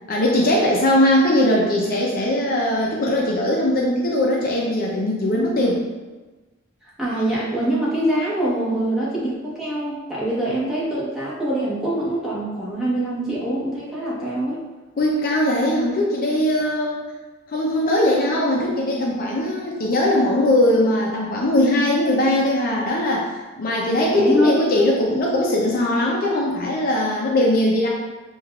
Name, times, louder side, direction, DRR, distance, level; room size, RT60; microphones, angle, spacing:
voice 1, 0.1-5.8 15.0-17.1 17.5-27.9, left 1 dB, 45° left, -2 dB, 0.5 m, -20 dB
voice 2, 7.0-14.6 24.1-24.5, right 1 dB, 5° right, -8 dB, 1.0 m, -24 dB
6.2 x 2.3 x 2.3 m, 1.2 s
head